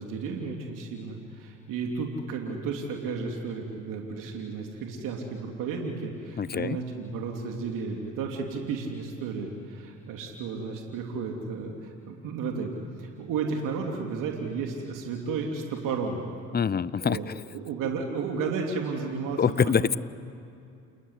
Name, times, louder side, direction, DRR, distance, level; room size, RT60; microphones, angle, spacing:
voice 1, 0.0-16.2 17.0-17.3 17.5-20.0, right 5 dB, 70° right, 1 dB, 3.1 m, -33 dB
voice 2, 6.4-6.8 16.5-17.3 19.4-20.0, left 7 dB, 30° left, 19 dB, 0.8 m, -25 dB
29.0 x 20.5 x 9.8 m, 2.5 s
hypercardioid pair, 65°, 34 cm